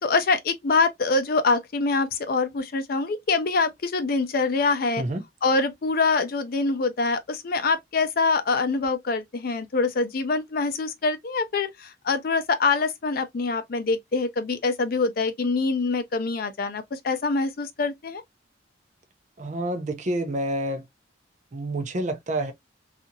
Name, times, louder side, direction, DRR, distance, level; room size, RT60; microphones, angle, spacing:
voice 1, 0.0-5.0 5.4-18.2, left 3 dB, 50° left, 0.4 m, -25 dB
voice 2, 19.4-20.9 21.5-22.5, right 1 dB, 40° right, 0.5 m, -28 dB
2.7 x 2.4 x 2.6 m
head